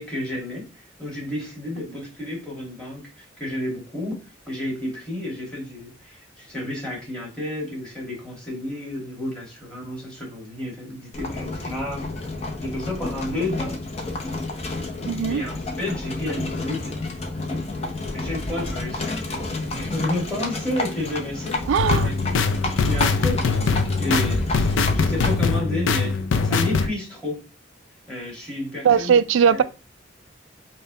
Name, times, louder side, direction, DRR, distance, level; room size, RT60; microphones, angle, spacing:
voice 1, 0.0-4.2 4.5-12.1 12.6-13.8 15.3-16.9 18.1-21.6 22.0-22.3 22.8-23.5 24.0-27.4 28.1-29.6, left 1 dB, 5° left, 1.4 m, -31 dB
Livestock farm animals working animals, 11.1-25.5, left 2 dB, 35° left, 0.6 m, -30 dB
voice 2, 15.1-15.4 21.7-22.1 28.8-29.6, right 7 dB, 80° right, 0.3 m, -19 dB
sound 1, 21.8-26.9, left 4 dB, 80° left, 0.4 m, -22 dB
5.2 x 2.2 x 2.7 m
head